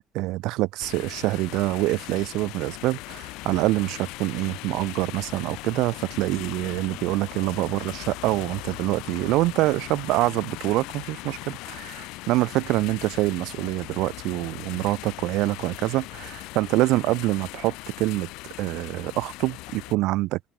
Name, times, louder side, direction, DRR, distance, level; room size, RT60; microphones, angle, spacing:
voice 1, 0.1-18.3 18.6-20.4, right 19 dB, 70° right, 0.7 m, -25 dB
sound 1, 0.8-20.0, left 22 dB, 80° left, 1.3 m, -39 dB
open air
cardioid pair, 170°, 0 cm